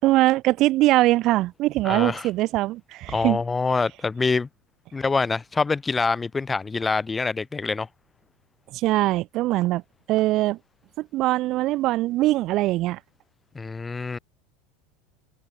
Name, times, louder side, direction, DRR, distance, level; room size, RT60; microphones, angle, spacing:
voice 1, 0.0-3.4 8.7-9.8 10.1-10.6 11.0-13.0, right 17 dB, 50° right, 4.3 m, -22 dB
voice 2, 1.8-2.3 3.1-4.5 4.9-7.9 13.6-14.2, left 4 dB, 20° left, 7.1 m, -25 dB
hypercardioid pair, 95°, 0 cm